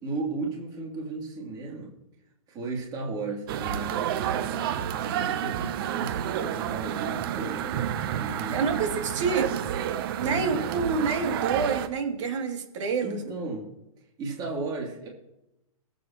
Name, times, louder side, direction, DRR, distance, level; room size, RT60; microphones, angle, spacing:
voice 1, 0.0-1.9 2.5-8.9 10.2-10.5 13.0-13.7 14.2-15.1, right 3 dB, 20° right, -1 dB, 2.9 m, -35 dB
sound 1, 3.5-11.9, right 10 dB, 40° right, 0.8 m, -30 dB
voice 2, 8.5-9.6 10.2-13.2, right 5 dB, 55° right, 3 dB, 2.6 m, -27 dB
18.5 x 8.2 x 3.0 m, 0.91 s
hypercardioid pair, 145°, 18 cm